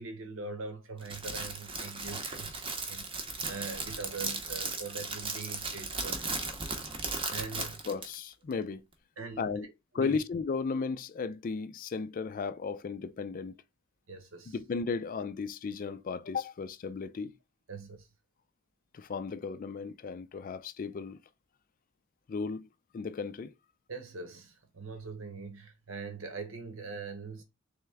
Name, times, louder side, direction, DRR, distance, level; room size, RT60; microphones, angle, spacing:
voice 1, 0.0-6.2 7.3-7.8 9.2-9.5 9.9-10.2 14.1-14.5 17.7-18.1 23.9-27.4, right 4 dB, 70° right, 1.1 m, -42 dB
Crackle, 1.0-8.1, right 3 dB, 25° right, 0.7 m, -36 dB
voice 2, 7.5-8.8 9.4-9.7 9.9-13.6 14.5-17.4 18.9-21.2 22.3-22.7 22.9-23.5, left 5 dB, 40° left, 0.3 m, -35 dB
3.4 x 3.4 x 3.3 m
head